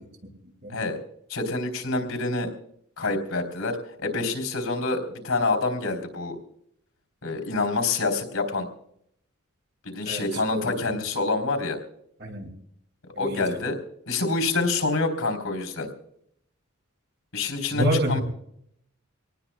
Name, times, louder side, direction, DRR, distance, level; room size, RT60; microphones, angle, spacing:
voice 1, 1.3-2.5 3.0-6.4 7.2-8.7 9.8-11.8 13.2-13.8 14.1-15.9 17.3-18.2, left 3 dB, 80° left, 6 dB, 3.4 m, -27 dB
voice 2, 17.7-18.2, right 1 dB, 55° right, -1 dB, 6.0 m, -26 dB
26.0 x 19.0 x 2.2 m, 0.70 s
head